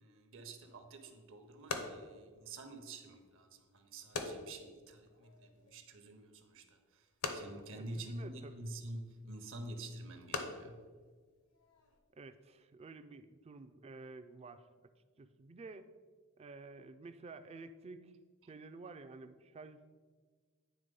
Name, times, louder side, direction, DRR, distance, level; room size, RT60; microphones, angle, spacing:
voice 1, 0.0-7.1 7.3-10.8 18.4-18.5, right 1 dB, 65° right, 6 dB, 0.8 m, -48 dB
sound 1, 0.6-12.0, left 4 dB, 75° left, 0.8 m, -46 dB
voice 2, 7.7-8.6 12.2-14.6 15.2-15.9 16.4-18.1 18.5-19.9, right 3 dB, 30° right, 10 dB, 0.4 m, -51 dB
9.4 x 3.4 x 5.3 m, 1.5 s
head